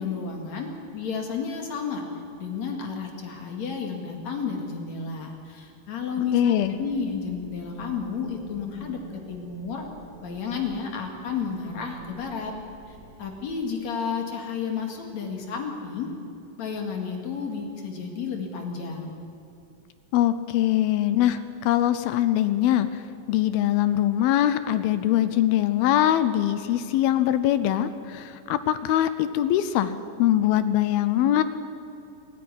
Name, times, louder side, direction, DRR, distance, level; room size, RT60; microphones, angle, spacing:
voice 1, 0.0-9.0 9.3-9.9 10.2-12.5 12.9-16.1 16.6-19.2, left 5 dB, 50° left, 2 dB, 2.8 m, -32 dB
voice 2, 6.3-6.7 20.1-23.0 23.3-29.9 30.2-31.4, left 12 dB, 80° left, 12 dB, 2.3 m, -22 dB
sound 1, 6.6-13.6, right 3 dB, 15° right, 4.6 m, -48 dB
27.0 x 9.8 x 9.7 m, 2.6 s
omnidirectional pair, 4.8 m